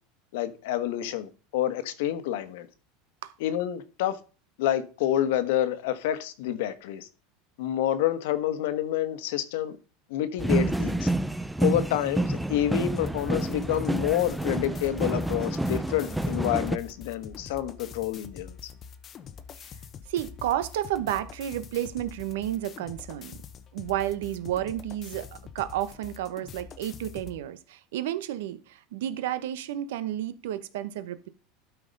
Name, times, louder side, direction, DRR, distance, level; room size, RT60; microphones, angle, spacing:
voice 1, 0.3-2.7 3.4-4.2 4.6-7.1 7.6-9.7 10.1-11.1 11.6-18.7, left 12 dB, 75° left, 1.3 m, -28 dB
sound 1, 10.4-16.8, right 2 dB, 5° right, 0.4 m, -28 dB
sound 2, 12.9-27.4, left 7 dB, 30° left, 0.8 m, -45 dB
voice 2, 20.1-23.4 23.7-25.3 25.5-31.3, right 12 dB, 85° right, 1.0 m, -31 dB
12.5 x 4.9 x 5.3 m
supercardioid pair, 155°, 0 cm